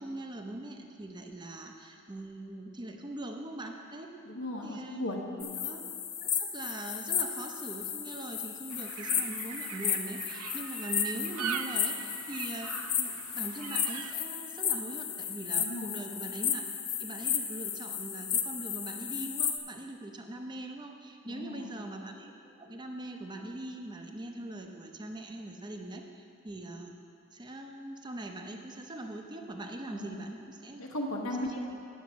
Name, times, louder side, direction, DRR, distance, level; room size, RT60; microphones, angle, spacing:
voice 1, 0.0-4.1 4.6-5.1 5.6-5.8 6.2-12.7 13.0-16.6 17.0-26.9 27.3-30.8 31.1-31.5, right 1 dB, 20° right, 3 dB, 0.7 m, -42 dB
voice 2, 4.2-5.5 15.6-16.0 21.2-21.8 29.9-30.3 30.8-31.6, left 1 dB, 70° left, -1 dB, 1.0 m, -37 dB
sound 1, 5.4-19.6, left 8 dB, 35° left, 0.6 m, -34 dB
sound 2, 8.7-14.1, right 7 dB, 90° right, 0.4 m, -40 dB
9.2 x 6.9 x 6.2 m, 2.5 s
head